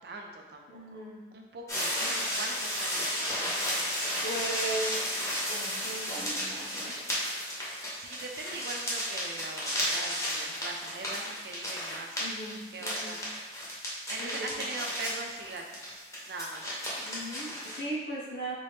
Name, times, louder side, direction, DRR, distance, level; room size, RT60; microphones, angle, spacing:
voice 1, 0.0-1.0 1.3-3.5 8.0-12.2 12.7-13.3 14.1-16.8, right 3 dB, 60° right, 2 dB, 0.4 m, -42 dB
voice 2, 0.7-1.2 4.2-5.0 5.5-7.0 12.2-13.2 14.2-14.5 17.0-18.5, right 1 dB, 75° left, -7 dB, 1.3 m, -37 dB
sound 1, 1.7-17.8, equal, 20° left, 0.8 m, -33 dB
3.6 x 2.7 x 3.4 m, 1.2 s
head